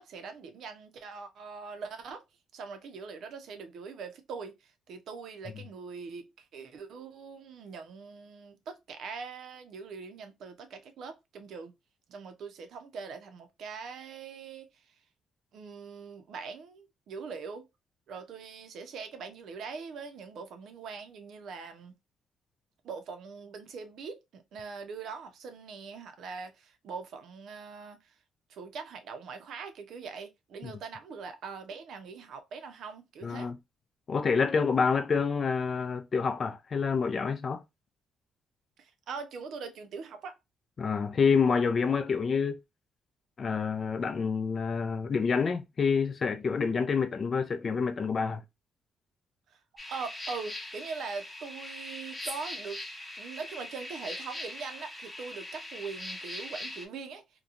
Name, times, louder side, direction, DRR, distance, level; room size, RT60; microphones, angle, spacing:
voice 1, 0.0-2.2 2.5-11.7 12.1-14.8 15.5-17.7 18.1-22.0 22.8-28.1 28.5-33.5 38.8-40.4 49.5-49.6 49.9-52.8 53.2-57.2, right 5 dB, 70° right, 0.6 m, -42 dB
voice 2, 33.2-33.6 34.1-37.6 40.8-42.6 43.4-48.4, left 5 dB, 45° left, 0.4 m, -27 dB
sound 1, 49.8-56.8, left 1 dB, 15° left, 0.8 m, -41 dB
2.9 x 2.2 x 2.4 m
cardioid pair, 90°, 0 cm